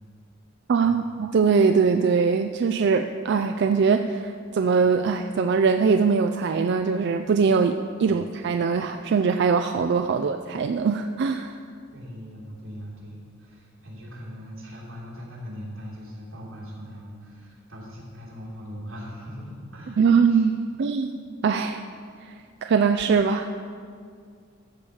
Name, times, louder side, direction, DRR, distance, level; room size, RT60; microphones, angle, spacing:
voice 1, 0.7-11.5 20.0-21.9 22.2-22.3 22.6-23.7, right 5 dB, 55° right, 6 dB, 0.3 m, -22 dB
voice 2, 11.9-20.5, equal, 90° right, -5 dB, 3.2 m, -40 dB
13.5 x 4.8 x 7.1 m, 2.2 s
head